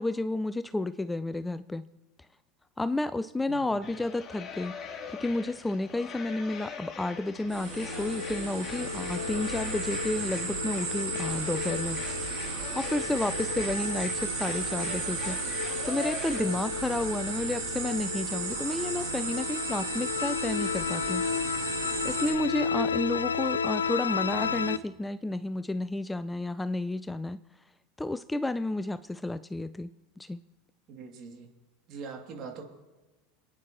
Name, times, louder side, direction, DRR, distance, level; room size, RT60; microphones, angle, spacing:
voice 1, 0.0-1.9 2.8-12.0 12.4-21.2 22.0-27.4 28.0-29.9 30.2-30.4, left 2 dB, 10° left, 14 dB, 0.4 m, -31 dB
voice 2, 3.5-3.8 30.9-31.5 31.9-32.6, right 5 dB, 50° right, 2 dB, 2.5 m, -42 dB
sound 1, 3.8-16.4, left 6 dB, 30° left, 2.7 m, -42 dB
sound 2, 7.4-24.8, left 6 dB, 90° left, 0.4 m, -34 dB
sound 3, 7.5-22.3, right 5 dB, 65° right, 3.5 m, -35 dB
27.5 x 9.9 x 3.0 m, 1.2 s
hypercardioid pair, 85°, 0 cm